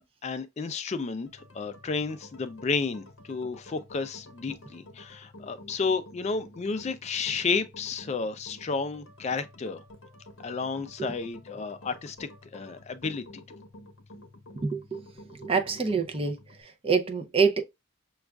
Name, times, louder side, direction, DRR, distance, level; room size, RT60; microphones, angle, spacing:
voice 1, 0.2-1.3 1.5-9.8 10.4-12.2 12.5-13.6, left 4 dB, 30° left, 0.3 m, -32 dB
sound 1, 1.3-16.6, left 1 dB, 60° left, 0.7 m, -50 dB
voice 2, 14.6-15.0 15.3-17.6, right 5 dB, 25° right, 0.5 m, -27 dB
6.1 x 2.3 x 2.2 m
head